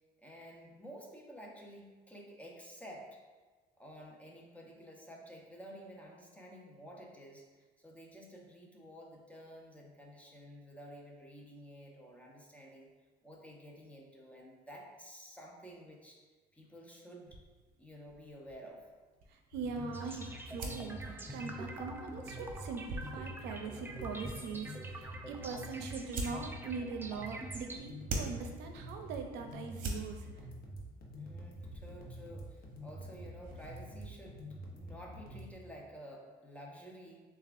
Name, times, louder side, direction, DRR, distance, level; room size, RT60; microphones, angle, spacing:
voice 1, 0.2-3.2 3.8-12.9 13.2-16.2 16.5-17.4 17.8-18.9 31.2-37.2, equal, 10° left, -1 dB, 0.8 m, -51 dB
sound 1, 17.3-34.1, right 2 dB, 55° right, 0.8 m, -47 dB
voice 2, 19.3-30.3, right 5 dB, 85° right, 4 dB, 0.5 m, -42 dB
sound 2, 19.5-35.5, equal, 60° left, 0.8 m, -47 dB
sound 3, 19.9-27.8, right 1 dB, 15° right, 0.4 m, -46 dB
6.6 x 2.3 x 2.5 m, 1.3 s
cardioid pair, 110°, 17 cm